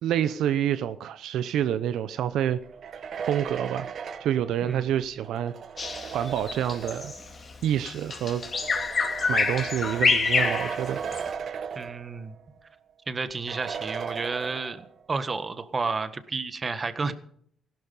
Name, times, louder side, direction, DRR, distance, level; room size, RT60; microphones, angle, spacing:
voice 1, 0.0-2.6 3.3-3.9 4.2-5.5 6.1-7.1 7.6-8.4 9.3-11.0, right 10 dB, 85° right, 12 dB, 0.7 m, -27 dB
sound 1, 2.6-7.3 8.2-12.4 12.7-12.8 13.5-15.0, right 6 dB, 60° right, 1.1 m, -37 dB
Bird vocalization bird call bird song, 5.8-11.3, left 4 dB, 40° left, 2.6 m, -27 dB
voice 2, 11.7-12.3 13.1-17.1, right 4 dB, 35° right, 11 dB, 1.5 m, -31 dB
17.0 x 12.0 x 5.4 m, 0.63 s
cardioid pair, 90°, 0 cm